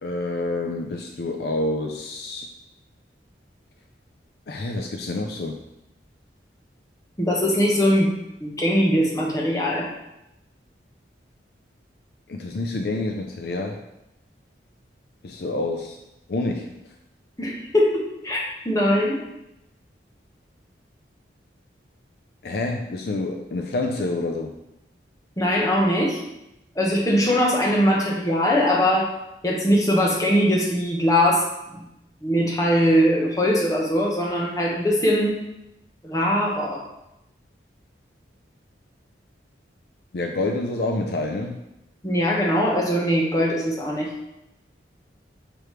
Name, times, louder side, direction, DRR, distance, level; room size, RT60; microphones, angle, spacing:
voice 1, 0.0-2.5 4.5-5.5 12.3-13.8 15.2-16.0 16.3-16.7 22.4-24.5 40.1-41.6, left 2 dB, 55° left, 3 dB, 0.5 m, -27 dB
voice 2, 7.2-8.1 8.4-9.9 17.4-19.2 25.4-26.2 26.7-29.1 29.4-31.5 31.7-31.9 32.2-35.4 36.0-36.8 42.0-44.1, equal, 20° left, -2 dB, 1.0 m, -21 dB
6.0 x 4.9 x 3.2 m, 0.88 s
head